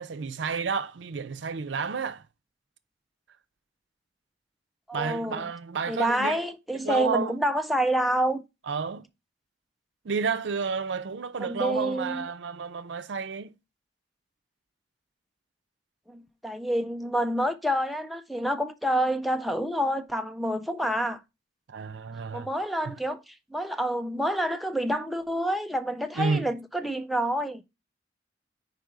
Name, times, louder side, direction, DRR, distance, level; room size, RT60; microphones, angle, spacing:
voice 1, 0.0-2.2 4.9-6.4 6.8-7.4 8.7-9.0 10.0-13.5 21.7-22.5 22.8-23.0 26.2-26.5, right 5 dB, 75° right, 0.5 m, -31 dB
voice 2, 4.9-5.5 5.9-8.4 11.4-12.3 16.1-21.2 22.3-27.6, right 1 dB, ahead, 0.4 m, -28 dB
5.1 x 4.7 x 4.6 m
head